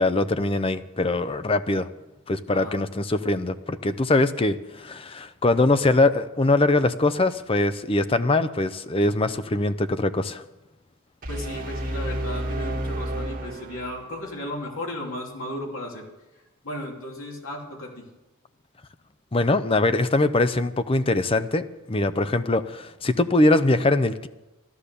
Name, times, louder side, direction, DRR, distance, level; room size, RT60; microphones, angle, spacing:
voice 1, 0.0-1.9 2.3-10.4 19.3-24.3, left 2 dB, 25° left, 11 dB, 0.6 m, -22 dB
voice 2, 2.5-2.8 11.3-16.0 16.6-18.1, left 1 dB, 70° left, 0 dB, 3.0 m, -35 dB
sound 1, 11.2-14.2, right 1 dB, 40° right, 1.8 m, -31 dB
14.0 x 11.5 x 6.9 m, 1.1 s
head